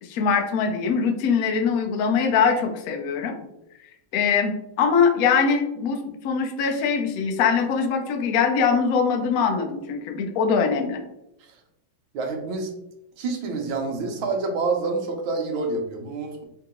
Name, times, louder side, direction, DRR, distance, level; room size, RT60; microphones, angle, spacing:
voice 1, 0.0-3.3 4.1-11.0, left 6 dB, 80° left, 3 dB, 0.7 m, -22 dB
voice 2, 12.1-12.7 13.2-16.4, right 3 dB, 75° right, 3 dB, 1.6 m, -27 dB
3.8 x 2.8 x 3.6 m, 0.86 s
omnidirectional pair, 2.3 m